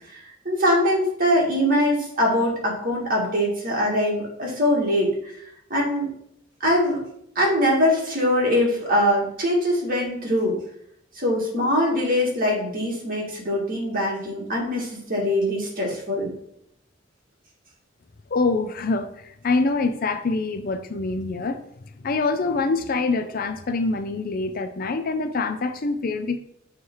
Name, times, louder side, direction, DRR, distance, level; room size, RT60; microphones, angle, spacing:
voice 1, 0.1-5.1 5.7-6.1 6.6-7.0 7.4-10.6 11.2-16.3, left 1 dB, 50° right, -2 dB, 2.1 m, -22 dB
voice 2, 18.3-21.6 22.0-26.4, left 3 dB, 50° left, 9 dB, 0.5 m, -25 dB
7.0 x 3.3 x 4.7 m, 0.73 s
head